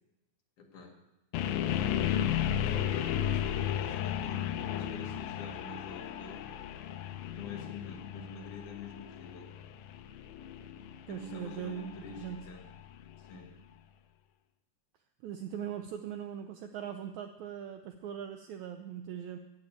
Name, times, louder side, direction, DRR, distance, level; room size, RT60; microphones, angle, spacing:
voice 1, 0.6-0.9 2.6-6.6 7.3-9.5 11.1-12.7 13.2-13.5, left 4 dB, 65° left, 1 dB, 3.3 m, -46 dB
sound 1, 1.3-13.3, left 10 dB, 90° left, 2.6 m, -34 dB
voice 2, 11.1-11.9 12.2-12.4 15.2-19.4, right 9 dB, 80° right, 7 dB, 1.7 m, -40 dB
14.0 x 7.4 x 8.9 m, 0.96 s
omnidirectional pair, 4.0 m